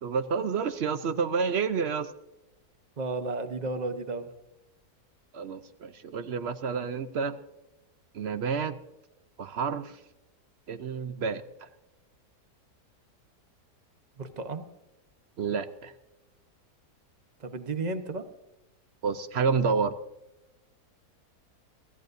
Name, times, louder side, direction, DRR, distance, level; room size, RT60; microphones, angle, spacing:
voice 1, 0.0-2.1 5.3-7.4 8.1-8.8 9.4-9.9 10.7-11.7 15.4-15.9 19.0-19.9, right 5 dB, 60° right, 12 dB, 0.7 m, -29 dB
voice 2, 3.0-4.3 14.2-14.7 17.4-18.3, right 3 dB, 30° right, 9 dB, 0.9 m, -33 dB
22.5 x 15.0 x 2.7 m, 0.96 s
omnidirectional pair, 1.8 m